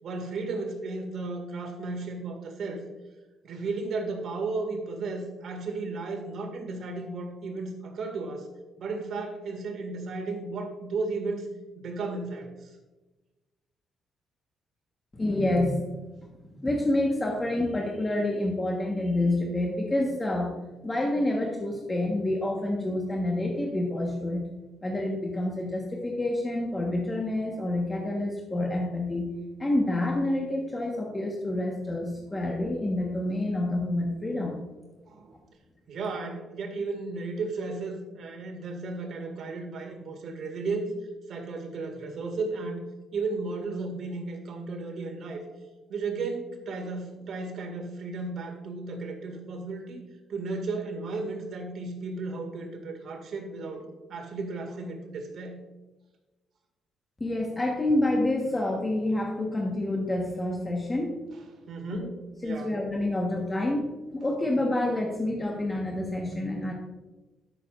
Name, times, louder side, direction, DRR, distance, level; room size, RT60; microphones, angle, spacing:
voice 1, 0.0-2.8 3.4-8.5 8.8-11.5 11.8-12.7 35.1-35.4 35.9-40.9 41.3-42.8 43.1-45.4 45.9-50.0 50.3-55.6 61.7-62.7, right 3 dB, 65° right, 2 dB, 2.1 m, -34 dB
voice 2, 15.1-16.0 16.3-20.6 20.8-24.4 24.8-29.3 29.6-34.6 57.2-61.2 61.9-62.1 62.4-66.7, left 1 dB, 20° left, -1 dB, 1.3 m, -28 dB
13.0 x 6.7 x 2.5 m, 1.1 s
cardioid pair, 90°, 0 cm